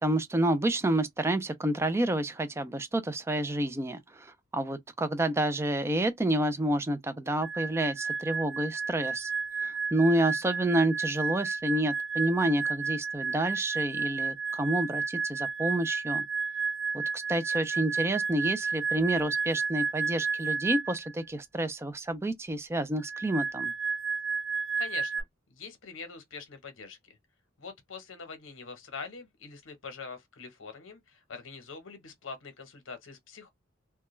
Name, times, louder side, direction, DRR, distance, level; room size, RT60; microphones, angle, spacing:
voice 1, 0.0-9.3 9.6-16.2 16.9-23.7, right 1 dB, 15° right, 0.3 m, -29 dB
sound 1, 7.4-21.1 23.0-25.2, right 5 dB, 90° right, 1.0 m, -32 dB
voice 2, 24.8-25.2 25.5-27.2 27.6-33.5, left 5 dB, 80° left, 0.8 m, -44 dB
2.3 x 2.2 x 3.0 m
head